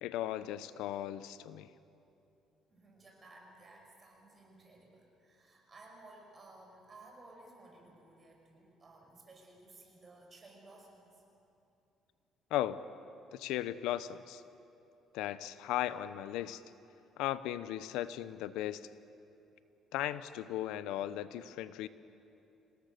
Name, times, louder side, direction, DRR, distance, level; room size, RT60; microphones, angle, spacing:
voice 1, 0.0-1.7 12.5-12.8 13.3-14.4 15.1-16.6 17.2-18.9 19.9-21.9, left 13 dB, 90° left, 14 dB, 0.7 m, -36 dB
voice 2, 2.7-11.2, right 2 dB, 30° right, 0 dB, 5.7 m, -57 dB
28.0 x 17.5 x 6.7 m, 2.8 s
cardioid pair, 110°, 0 cm